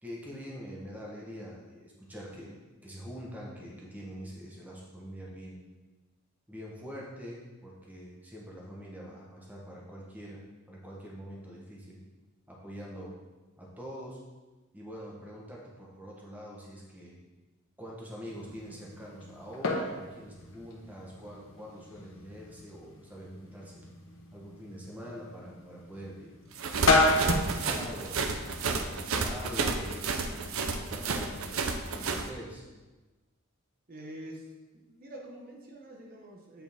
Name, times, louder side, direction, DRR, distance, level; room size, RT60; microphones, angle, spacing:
voice 1, 0.0-5.6 6.5-12.0 12.5-13.1 13.6-14.2 14.7-17.2 17.8-23.8 24.3-26.3 26.7-28.2 28.7-31.6 31.9-32.6, equal, 10° right, -4 dB, 1.1 m, -44 dB
sound 1, 18.3-28.9, left 2 dB, 70° left, 1.1 m, -32 dB
sound 2, 26.6-32.3, right 4 dB, 85° right, 0.6 m, -31 dB
voice 2, 33.9-34.5 34.7-36.6, right 1 dB, 45° right, -1 dB, 1.0 m, -46 dB
8.5 x 5.0 x 3.5 m, 1.2 s
head